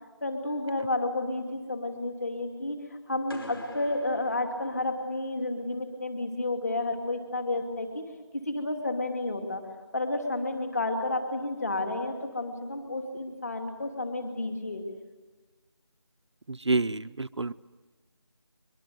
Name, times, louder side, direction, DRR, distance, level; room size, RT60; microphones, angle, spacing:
voice 1, 0.2-8.0 8.3-9.6 9.9-14.8, left 2 dB, 35° left, 5 dB, 2.8 m, -31 dB
sound 1, 3.3-5.4, left 1 dB, 55° left, 5.0 m, -45 dB
voice 2, 16.5-17.5, right 3 dB, 75° right, 11 dB, 0.7 m, -28 dB
23.0 x 23.0 x 9.4 m, 1.3 s
figure-of-eight pair, 175°, 15 cm